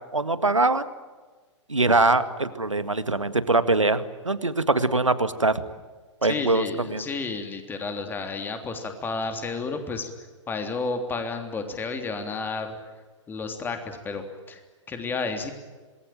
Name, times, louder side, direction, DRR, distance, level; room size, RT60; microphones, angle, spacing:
voice 1, 0.1-0.9 1.7-5.5 6.2-7.0, right 2 dB, 80° right, 12 dB, 1.9 m, -22 dB
voice 2, 6.2-10.1 10.5-12.7 13.3-14.6 14.9-15.5, left 4 dB, 10° left, 6 dB, 3.3 m, -31 dB
27.0 x 20.5 x 9.1 m, 1.3 s
figure-of-eight pair, 115°, 16 cm